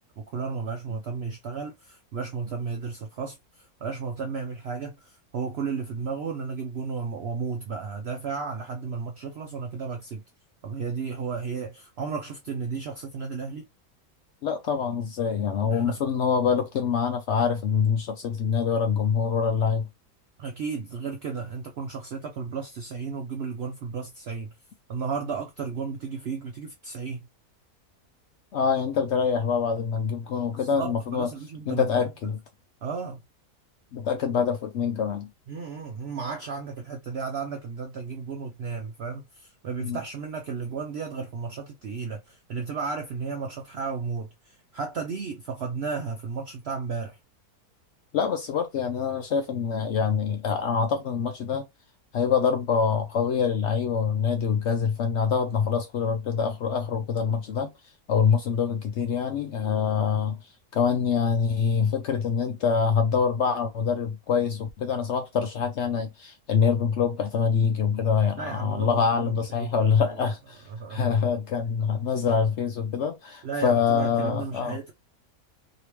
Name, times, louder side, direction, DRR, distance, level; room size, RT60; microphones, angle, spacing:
voice 1, 0.2-10.2 10.6-13.6 15.7-16.0 20.4-24.5 24.9-27.3 30.7-31.9 32.8-33.2 35.5-47.2 68.4-69.3 69.6-70.3 70.7-71.1 73.4-74.9, right 5 dB, 65° right, 0.6 m, -34 dB
voice 2, 14.4-19.9 28.5-31.3 31.7-32.4 33.9-35.3 39.8-40.0 48.1-51.6 52.1-57.7 58.1-60.4 60.7-70.6 70.9-74.9, left 6 dB, 70° left, 0.7 m, -25 dB
3.1 x 2.9 x 2.9 m
omnidirectional pair, 1.6 m